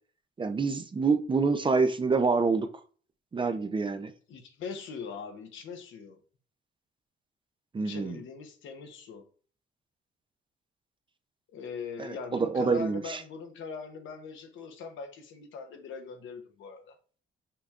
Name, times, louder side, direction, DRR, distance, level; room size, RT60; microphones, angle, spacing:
voice 1, 0.4-2.7 3.3-4.1 7.7-8.2 12.0-13.2, right 4 dB, 25° right, 0.5 m, -27 dB
voice 2, 4.3-6.2 7.8-9.3 11.5-17.0, left 5 dB, 75° left, 0.9 m, -41 dB
5.7 x 3.3 x 2.4 m
cardioid pair, 90°, 20 cm